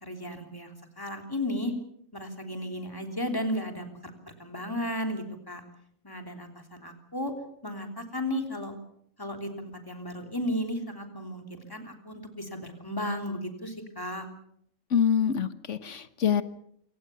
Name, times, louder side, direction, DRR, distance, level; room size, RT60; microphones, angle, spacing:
voice 1, 0.0-1.7 2.1-3.9 4.4-5.6 6.0-7.3 7.6-8.7 9.2-14.2, equal, 15° left, 4 dB, 3.3 m, -34 dB
voice 2, 14.9-16.4, left 8 dB, 65° left, 12 dB, 1.4 m, -25 dB
28.0 x 17.0 x 6.9 m, 0.70 s
omnidirectional pair, 1.4 m